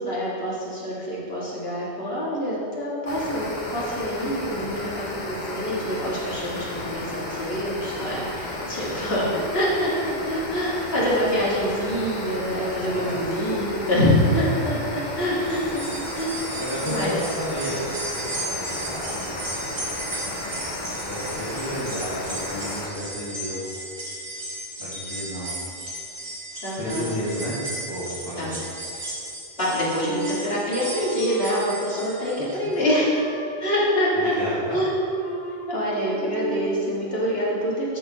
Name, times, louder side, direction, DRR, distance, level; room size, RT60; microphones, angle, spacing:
voice 1, 0.0-15.8 16.1-16.4 16.8-17.1 26.6-27.1 28.4-28.5 29.6-33.1 33.6-34.3 34.7-34.9 35.7-38.0, equal, 65° left, -7 dB, 2.4 m, -25 dB
sound 1, 3.1-22.9, left 1 dB, 45° left, 1.2 m, -33 dB
sound 2, 15.4-32.7 33.1-33.2 34.3-34.4, right 1 dB, 60° right, 2.0 m, -35 dB
voice 2, 16.5-17.8 18.3-19.6 21.0-23.7 24.8-25.5 26.8-27.5 27.9-28.6 34.2-34.8, equal, 20° left, -12 dB, 2.2 m, -32 dB
Wind instrument woodwind instrument, 30.0-32.4 32.7-36.8, right 2 dB, 80° left, 1.6 m, -36 dB
12.5 x 6.9 x 3.1 m, 2.5 s
omnidirectional pair, 1.1 m